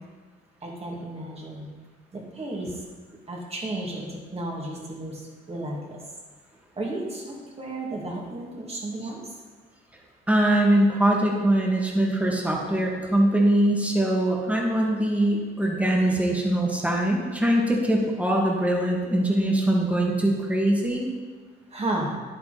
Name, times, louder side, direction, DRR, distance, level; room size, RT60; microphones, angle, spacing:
voice 1, 0.6-1.7 2.1-2.7 3.3-6.0 6.8-9.2 21.7-22.2, right 1 dB, 30° right, -2 dB, 2.7 m, -33 dB
voice 2, 10.3-21.0, right 1 dB, 5° right, -2 dB, 2.4 m, -22 dB
10.5 x 9.2 x 4.3 m, 1.4 s
cardioid pair, 90°, 20 cm